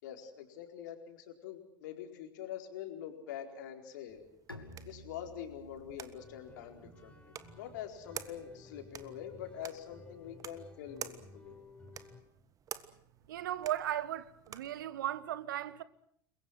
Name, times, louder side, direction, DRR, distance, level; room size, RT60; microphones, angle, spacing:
voice 1, 0.0-4.2 4.8-11.5, left 10 dB, 60° left, 4.4 m, -45 dB
sound 1, 4.1-14.8, right 8 dB, 30° right, 1.7 m, -51 dB
Bowed string instrument, 4.5-10.1, equal, 85° left, 2.9 m, -56 dB
sound 2, 6.1-12.2, left 2 dB, 10° left, 5.5 m, -56 dB
voice 2, 13.3-15.8, right 12 dB, 65° right, 1.4 m, -36 dB
30.0 x 22.5 x 6.3 m
figure-of-eight pair, 75°, 11 cm